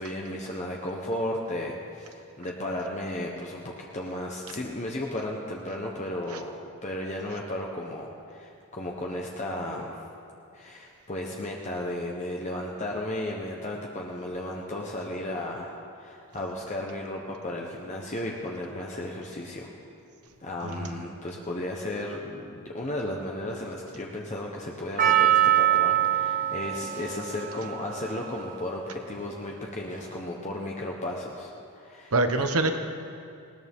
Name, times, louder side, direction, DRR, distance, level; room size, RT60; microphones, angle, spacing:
voice 1, 0.0-6.5 6.8-10.0 10.5-19.7 20.4-32.1, left 1 dB, 30° left, -1 dB, 1.1 m, -34 dB
Percussion, 25.0-29.3 30.0-30.1, right 11 dB, 35° right, 0.7 m, -25 dB
voice 2, 32.1-32.8, right 2 dB, 75° right, 7 dB, 1.2 m, -25 dB
19.5 x 19.0 x 3.7 m, 2.5 s
head